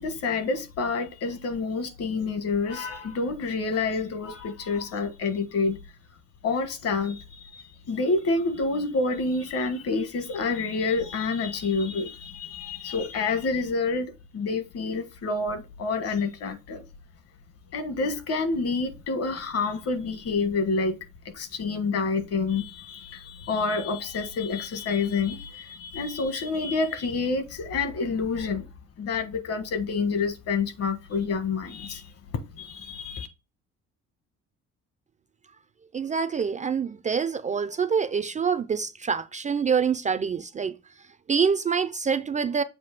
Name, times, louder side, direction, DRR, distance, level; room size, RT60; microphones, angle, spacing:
voice 1, 0.0-5.8 6.4-16.8 17.7-21.0 21.3-28.7 29.0-32.1 32.5-33.3, left 4 dB, 55° left, 1.5 m, -28 dB
voice 2, 35.9-40.7 41.3-42.6, right 6 dB, 25° right, 0.4 m, -26 dB
7.6 x 2.6 x 5.9 m
cardioid pair, 120°, 29 cm